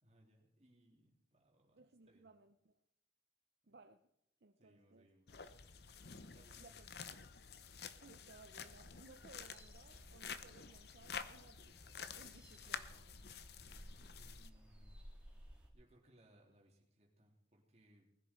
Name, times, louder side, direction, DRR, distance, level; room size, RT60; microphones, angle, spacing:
voice 1, 0.0-2.3 3.6-3.8 4.6-5.5 6.3-7.2 13.9-15.0 15.7-18.2, right 1 dB, 35° right, 3.2 m, -69 dB
voice 2, 1.7-2.7 3.7-4.0 4.4-5.5 6.3-6.9 7.9-13.1, right 3 dB, 60° right, 0.6 m, -62 dB
sound 1, 5.3-14.5, left 6 dB, 60° left, 0.8 m, -50 dB
sound 2, 8.7-15.7, equal, 5° right, 2.4 m, -59 dB
20.0 x 10.5 x 4.5 m
head